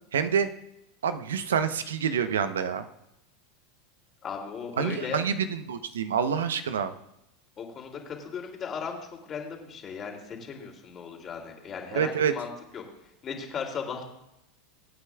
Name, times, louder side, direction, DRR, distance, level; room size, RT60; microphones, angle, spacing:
voice 1, 0.1-0.5 1.0-2.8 4.8-6.9 11.9-12.3, right 7 dB, 80° right, 11 dB, 0.8 m, -27 dB
voice 2, 4.2-5.2 7.6-14.1, left 6 dB, 35° left, 1 dB, 2.8 m, -37 dB
23.5 x 8.6 x 2.4 m, 0.84 s
hypercardioid pair, 90°, 0 cm